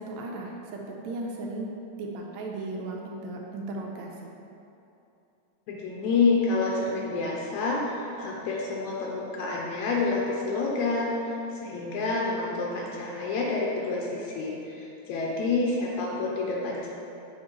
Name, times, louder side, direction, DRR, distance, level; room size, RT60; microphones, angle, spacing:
voice 1, 0.0-4.3, right 2 dB, 80° right, 0 dB, 1.8 m, -36 dB
voice 2, 5.7-16.9, left 3 dB, 85° left, -3 dB, 2.0 m, -28 dB
6.5 x 5.1 x 3.0 m, 2.8 s
omnidirectional pair, 3.3 m